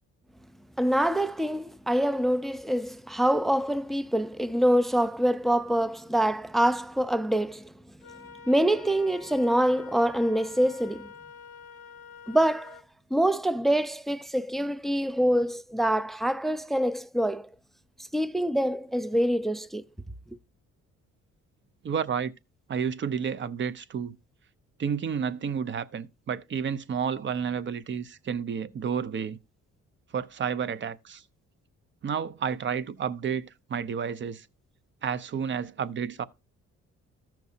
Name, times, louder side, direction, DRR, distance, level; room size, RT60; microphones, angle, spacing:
voice 1, 0.8-7.7 8.5-11.1 12.3-12.8 13.1-17.5 18.1-19.8, right 1 dB, ahead, 0.4 m, -25 dB
Wind instrument woodwind instrument, 8.0-12.9, left 5 dB, 50° left, 0.9 m, -47 dB
voice 2, 21.8-22.3 22.7-24.2 24.8-29.4 30.1-31.2 32.0-34.5 35.0-36.3, right 7 dB, 40° right, 0.6 m, -31 dB
13.5 x 5.9 x 2.7 m
cardioid pair, 90°, 30 cm